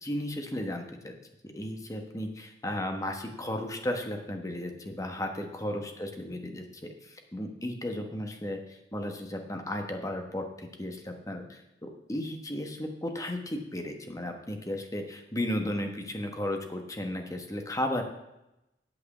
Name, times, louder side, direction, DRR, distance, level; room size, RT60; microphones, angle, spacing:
voice 1, 0.0-1.1 1.4-18.0, left 1 dB, 20° left, 4 dB, 1.3 m, -34 dB
8.5 x 7.8 x 7.3 m, 0.91 s
head